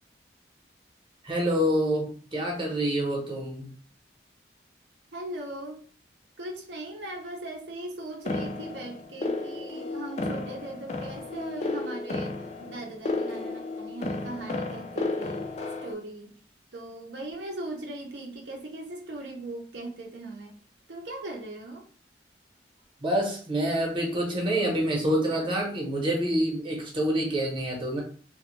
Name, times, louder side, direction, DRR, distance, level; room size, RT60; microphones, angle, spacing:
voice 1, 1.2-3.7 23.0-28.0, right 1 dB, 30° right, 0 dB, 0.8 m, -27 dB
voice 2, 5.1-5.8 6.4-12.3 12.6-15.5 15.8-16.3 16.7-20.6 20.9-21.9, right 1 dB, 75° right, 0 dB, 0.6 m, -39 dB
sound 1, 8.3-15.9, left 2 dB, 40° left, 0.3 m, -33 dB
3.0 x 2.2 x 3.1 m, 0.43 s
head